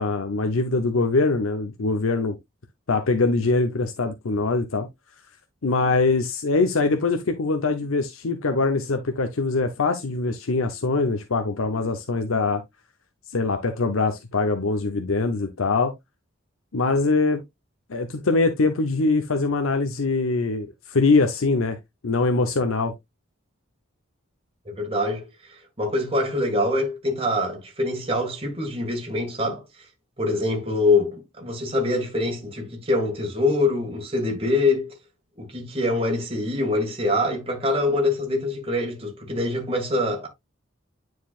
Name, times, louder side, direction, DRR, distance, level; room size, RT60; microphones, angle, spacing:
voice 1, 0.0-2.4 2.9-4.9 5.6-12.6 13.3-15.9 16.7-17.4 17.9-21.8 22.0-22.9, left 3 dB, 85° left, 0.8 m, -23 dB
voice 2, 24.7-25.3 25.8-29.6 30.2-34.9 35.4-40.3, left 2 dB, 30° right, 2.0 m, -24 dB
9.4 x 4.7 x 2.4 m
head